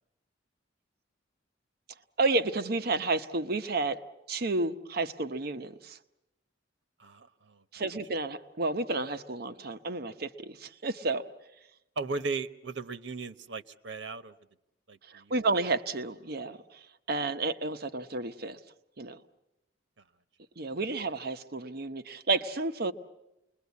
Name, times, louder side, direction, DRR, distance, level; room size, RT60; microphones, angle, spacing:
voice 1, 2.2-4.0 4.3-6.0 7.7-11.2 15.1-16.8 17.1-18.6 19.0-19.2 20.6-22.9, right 3 dB, 55° right, 9 dB, 0.9 m, -31 dB
voice 2, 7.0-7.6 12.0-14.3 14.9-15.4, right 4 dB, 85° right, 12 dB, 1.0 m, -37 dB
29.0 x 21.5 x 8.3 m, 0.90 s
head